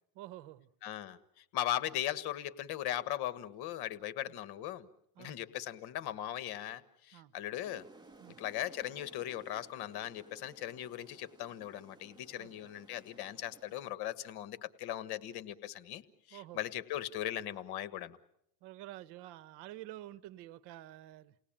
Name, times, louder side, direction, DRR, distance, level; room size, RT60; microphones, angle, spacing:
voice 1, 0.1-0.7 4.3-4.4 5.2-5.4 7.1-7.3 8.2-8.4 12.4-12.5 16.3-16.6 18.6-21.3, right 15 dB, 70° right, 17 dB, 1.1 m, -49 dB
voice 2, 0.8-4.9 5.2-7.8 8.4-18.2, left 12 dB, 60° left, 14 dB, 1.5 m, -39 dB
sound 1, 7.6-13.9, right 3 dB, 10° right, 1.8 m, -59 dB
29.5 x 18.5 x 8.8 m, 0.78 s
supercardioid pair, 115°, 43 cm